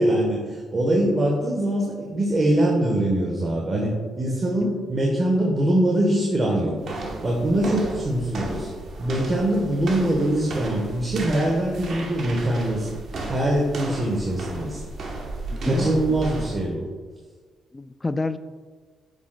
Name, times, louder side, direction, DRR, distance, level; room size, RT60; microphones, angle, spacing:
voice 1, 0.0-6.8 7.2-8.7 9.0-12.9 13.3-14.8 15.6-16.8, right 1 dB, 30° right, -2 dB, 1.1 m, -23 dB
sound 1, 6.8-16.7, right 2 dB, 60° right, 1.1 m, -34 dB
voice 2, 15.5-16.2 17.7-18.4, left 2 dB, 20° left, 13 dB, 0.3 m, -29 dB
8.1 x 6.4 x 2.3 m, 1.5 s
cardioid pair, 90°, 0 cm